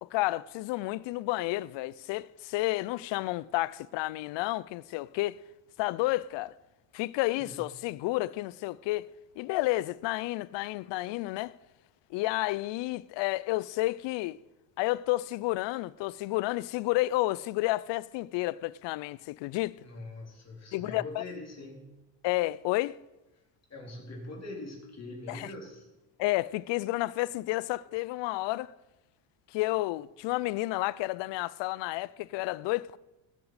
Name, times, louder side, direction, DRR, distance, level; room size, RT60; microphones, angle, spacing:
voice 1, 0.0-5.4 5.8-6.6 6.9-9.1 9.4-11.5 12.1-14.4 14.8-19.8 20.7-21.2 22.2-23.0 25.3-25.5 26.2-28.7 29.5-33.0, left 19 dB, 65° left, 0.6 m, -31 dB
voice 2, 19.8-22.0 23.7-25.9, left 2 dB, 35° left, 4.1 m, -43 dB
18.0 x 7.4 x 4.9 m
cardioid pair, 100°, 47 cm